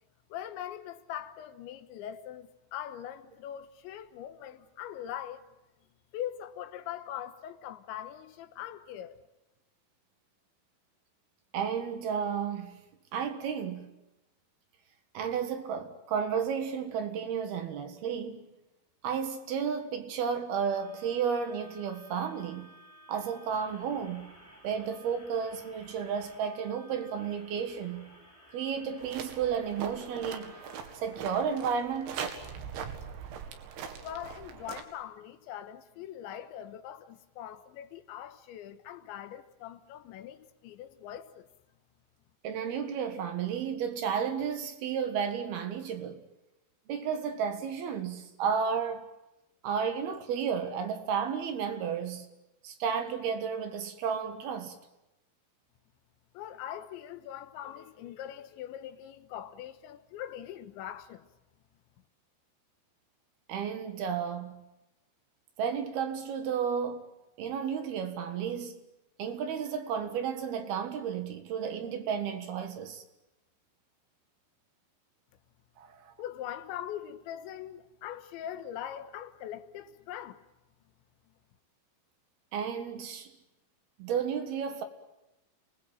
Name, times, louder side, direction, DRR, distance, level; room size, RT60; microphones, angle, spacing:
voice 1, 0.3-5.4 6.1-9.2 34.0-41.5 56.3-61.2 76.2-80.4, left 11 dB, 80° left, 3.5 m, -42 dB
voice 2, 11.5-12.8 13.1-13.9 15.1-18.6 19.0-22.7 23.1-24.3 24.6-28.1 28.5-30.6 31.0-32.2 42.4-46.2 46.9-49.1 49.6-52.3 52.6-54.8 63.5-64.6 65.6-67.1 67.4-68.8 69.2-73.0 75.8-76.1 82.5-83.3 84.0-84.8, right 7 dB, 65° right, 3.3 m, -32 dB
sound 1, 20.7-30.8, equal, 5° right, 5.2 m, -55 dB
sound 2, 29.0-34.8, right 7 dB, 85° right, 4.6 m, -41 dB
29.0 x 20.5 x 9.0 m
omnidirectional pair, 5.3 m